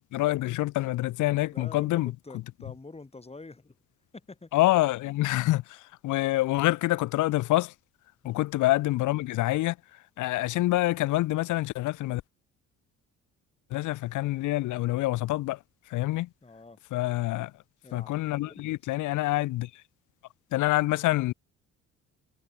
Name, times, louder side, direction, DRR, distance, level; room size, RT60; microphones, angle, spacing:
voice 1, 0.0-2.1 4.5-7.7 8.2-9.8 10.2-12.2 13.7-15.6 15.9-16.3 16.9-17.5 17.9-19.7 20.5-21.3, left 17 dB, 80° left, 0.7 m, -26 dB
voice 2, 1.5-3.8 4.1-4.6 8.2-8.5 16.4-16.8 17.8-18.8, left 3 dB, 20° left, 7.1 m, -47 dB
cardioid pair, 90°, 30 cm